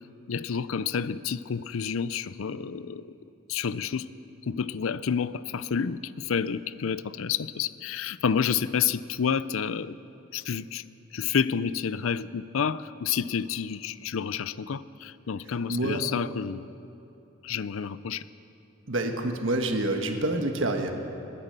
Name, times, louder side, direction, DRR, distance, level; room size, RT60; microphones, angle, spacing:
voice 1, 0.3-3.2 3.5-4.1 4.5-10.0 10.3-10.8 11.1-16.7 17.4-18.2, left 7 dB, 80° left, 16 dB, 0.5 m, -29 dB
voice 2, 15.7-16.0 18.9-20.9, right 2 dB, 70° right, 4 dB, 1.4 m, -27 dB
21.5 x 9.8 x 6.8 m, 2.8 s
head